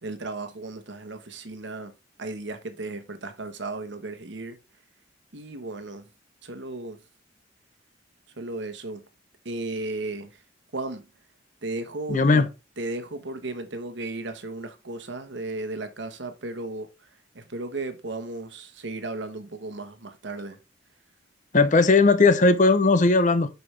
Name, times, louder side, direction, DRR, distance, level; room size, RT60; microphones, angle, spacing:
voice 1, 0.0-1.9 2.2-4.6 5.3-6.1 6.4-7.0 8.4-9.0 9.4-10.4 10.7-11.0 11.6-12.4 12.8-17.1 17.3-20.6, right 2 dB, 65° right, 1.2 m, -35 dB
voice 2, 12.1-12.5 21.5-23.5, left 3 dB, 40° left, 0.7 m, -18 dB
6.7 x 6.0 x 3.3 m
head